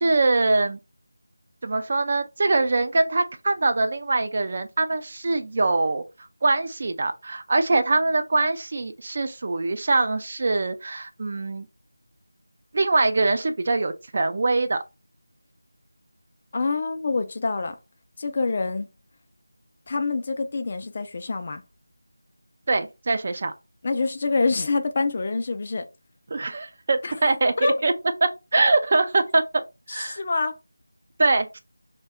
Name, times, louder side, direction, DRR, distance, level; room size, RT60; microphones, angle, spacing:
voice 1, 0.0-0.8 1.6-6.0 6.4-11.7 12.7-14.8 22.7-23.5 26.3-27.9 28.2-29.6 29.9-30.2 31.2-31.6, right 3 dB, 40° right, 0.4 m, -23 dB
voice 2, 16.5-17.8 18.2-18.9 19.9-21.6 23.8-25.9 27.0-27.2 27.6-27.8 29.9-30.6, left 3 dB, 35° left, 0.3 m, -26 dB
2.7 x 2.1 x 3.4 m
figure-of-eight pair, 170°, 0 cm